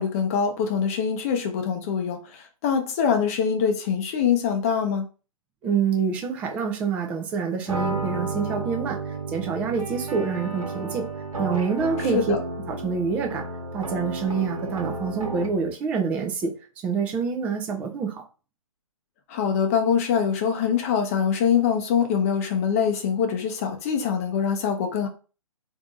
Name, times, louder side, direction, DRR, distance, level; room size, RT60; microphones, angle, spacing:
voice 1, 0.0-5.1 12.1-12.4 19.3-25.1, left 7 dB, 25° left, 0.7 m, -24 dB
voice 2, 5.6-11.1 11.4-12.2 12.7-13.4 13.7-16.5 16.8-18.2, right 5 dB, 10° right, 0.4 m, -27 dB
sound 1, 7.7-15.7, right 3 dB, 70° right, 1.1 m, -32 dB
3.4 x 2.7 x 3.8 m
figure-of-eight pair, 140°, 18 cm